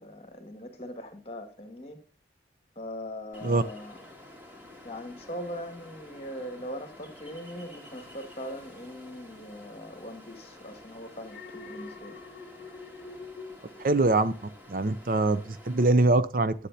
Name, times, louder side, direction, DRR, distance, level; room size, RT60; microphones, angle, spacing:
voice 1, 0.0-2.0 2.8-4.0 4.8-12.2, equal, 30° left, 2.0 m, -40 dB
Ocean, 3.3-15.9, left 1 dB, 10° right, 2.7 m, -50 dB
Alarm, 11.2-14.5 14.9-15.3, left 3 dB, 50° left, 1.4 m, -45 dB
voice 2, 13.8-14.3 14.7-16.5, right 2 dB, 50° right, 0.6 m, -23 dB
11.5 x 8.3 x 2.8 m
head